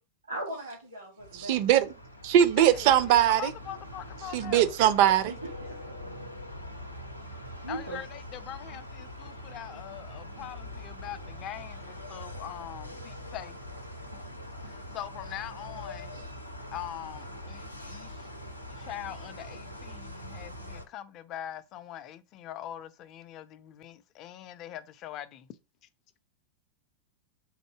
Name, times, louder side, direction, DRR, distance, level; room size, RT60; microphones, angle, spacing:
voice 1, 0.3-1.6 5.3-6.1 7.6-8.1 16.1-16.3 18.9-19.0, right 1 dB, 85° right, 1.3 m, -39 dB
sound 1, 1.2-20.9, left 1 dB, 90° left, 0.6 m, -43 dB
voice 2, 1.3-1.9 2.2-3.5 4.3-5.3, right 11 dB, 45° right, 0.5 m, -21 dB
voice 3, 3.3-4.7 7.7-13.6 14.9-16.1 16.7-18.1 18.8-25.5, left 11 dB, 35° left, 0.4 m, -42 dB
3.6 x 2.6 x 4.5 m
figure-of-eight pair, 90°, 0 cm